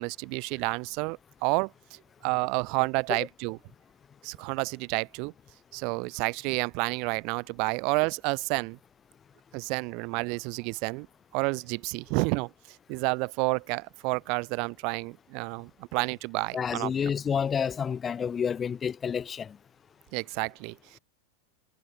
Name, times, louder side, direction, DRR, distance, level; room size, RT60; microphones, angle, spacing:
voice 1, 0.0-3.6 4.2-5.3 5.7-8.8 9.5-11.1 11.3-12.5 12.9-16.9 20.1-21.0, right 31 dB, 45° right, 0.5 m, -30 dB
voice 2, 16.5-19.6, left 7 dB, 20° left, 1.8 m, -29 dB
figure-of-eight pair, 90°, 0 cm